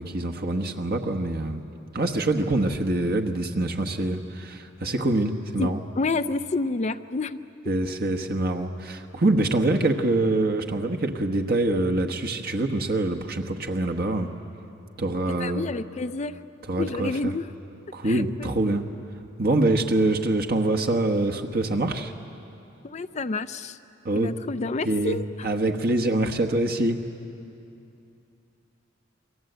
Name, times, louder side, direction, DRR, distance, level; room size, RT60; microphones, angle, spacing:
voice 1, 0.0-1.6 1.9-5.8 7.7-14.3 15.0-15.6 16.7-17.3 17.9-18.9 19.4-22.1 24.0-24.3 24.8-27.0, right 2 dB, 50° right, 4 dB, 1.2 m, -25 dB
voice 2, 5.6-7.4 15.4-16.4 16.8-17.5 18.0-18.5 22.8-23.8 24.1-25.2, left 3 dB, 35° left, 11 dB, 0.5 m, -29 dB
29.0 x 23.0 x 8.0 m, 2.8 s
head